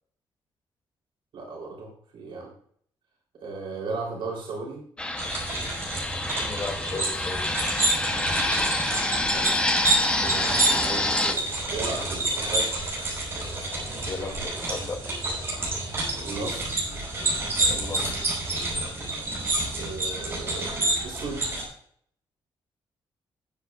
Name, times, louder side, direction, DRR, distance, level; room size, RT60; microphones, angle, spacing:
voice 1, 1.3-2.5 3.4-4.8 9.2-9.7 10.2-12.7 16.2-16.8 19.7-21.4, right 3 dB, 75° right, -2 dB, 3.5 m, -36 dB
Fixed-wing aircraft airplane, 5.0-11.3, left 2 dB, 10° left, 0.9 m, -27 dB
sound 1, 5.2-21.6, right 2 dB, 25° right, 5.5 m, -28 dB
voice 2, 6.4-7.6 13.9-15.0 17.7-18.2, left 3 dB, 35° left, 2 dB, 2.4 m, -35 dB
19.5 x 8.1 x 2.4 m, 0.62 s
wide cardioid pair, 180°, 9 cm